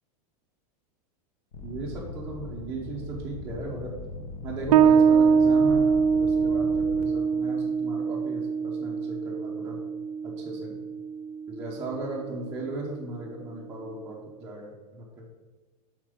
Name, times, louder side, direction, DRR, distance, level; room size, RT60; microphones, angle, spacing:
sound 1, 1.5-7.0, left 2 dB, 70° left, 1.6 m, -40 dB
voice 1, 1.6-3.9 4.4-9.8 10.2-10.8 11.5-15.2, right 2 dB, 10° right, -7 dB, 0.9 m, -37 dB
Bass guitar, 4.7-11.9, right 6 dB, 80° right, 0.5 m, -23 dB
7.3 x 5.5 x 5.1 m, 1.3 s
supercardioid pair, 175°, 20 cm